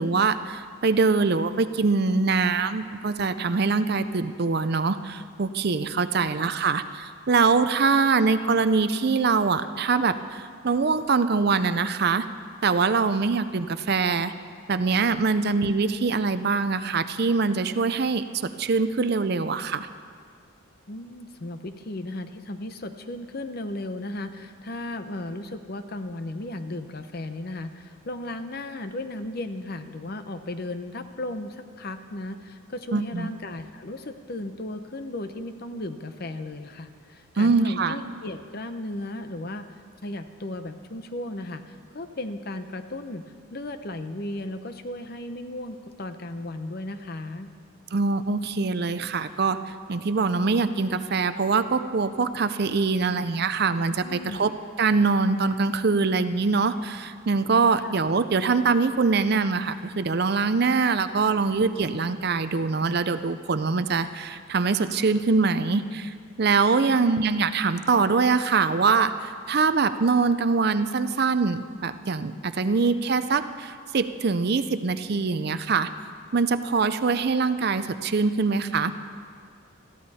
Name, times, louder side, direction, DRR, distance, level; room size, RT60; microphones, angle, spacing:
voice 1, 0.0-12.2 12.6-14.3 14.7-19.9 32.9-33.3 37.4-38.0 47.9-54.5 54.8-75.9 76.3-78.9, right 4 dB, 50° right, 11 dB, 0.5 m, -23 dB
voice 2, 20.9-43.3 43.5-47.5 54.0-54.4 57.8-57.9 66.9-67.1, left 1 dB, 45° left, 9 dB, 0.7 m, -35 dB
21.0 x 14.5 x 4.2 m, 2.2 s
head